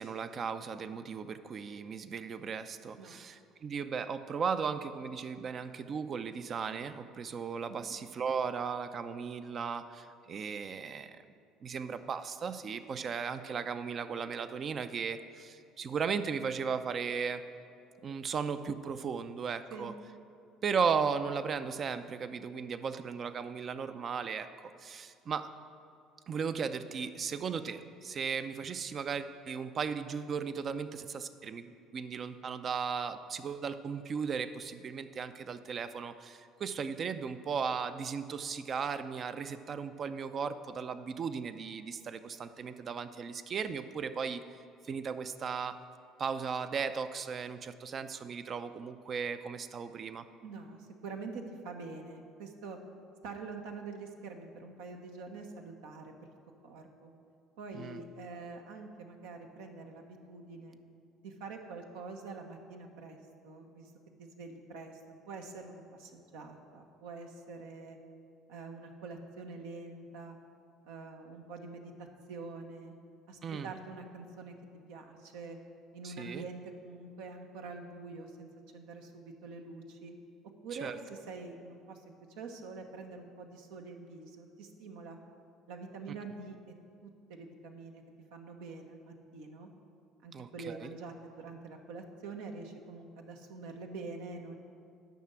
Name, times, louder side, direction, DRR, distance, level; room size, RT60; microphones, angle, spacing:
voice 1, 0.0-11.2 11.6-17.4 18.0-19.9 20.6-25.5 26.3-44.4 44.8-45.7 46.2-50.3 57.7-58.0 73.4-73.7 76.0-76.4 80.8-80.9 90.3-90.9, right 6 dB, 45° right, 10 dB, 0.5 m, -36 dB
voice 2, 50.4-52.8 53.2-56.3 56.6-57.1 57.6-60.8 61.2-63.2 63.4-63.9 64.2-65.0 65.3-68.0 68.5-70.4 70.8-72.9 73.3-74.5 74.9-75.6 75.9-80.1 80.6-82.0 82.4-85.2 85.7-86.6 87.0-88.0 88.3-89.7 90.2-94.5, right 3 dB, 80° right, 3 dB, 1.0 m, -45 dB
9.3 x 5.8 x 7.5 m, 2.4 s
hypercardioid pair, 70°, 0 cm